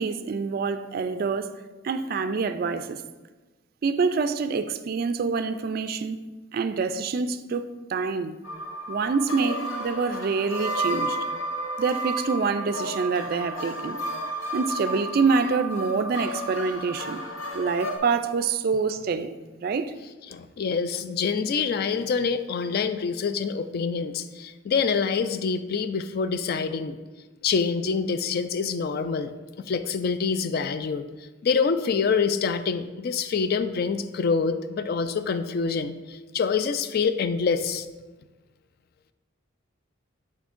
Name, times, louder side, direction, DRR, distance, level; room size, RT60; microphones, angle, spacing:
voice 1, 0.0-3.0 3.8-6.2 6.5-8.4 8.9-11.2 11.8-14.0 14.5-17.2 17.5-19.9, right 4 dB, 50° right, 0.3 m, -26 dB
sound 1, 8.4-18.0, right 1 dB, 75° left, 0.8 m, -32 dB
voice 2, 20.3-27.0 27.4-29.3 29.6-31.0 31.4-37.9, left 5 dB, 50° left, 0.3 m, -26 dB
10.5 x 4.4 x 2.5 m
head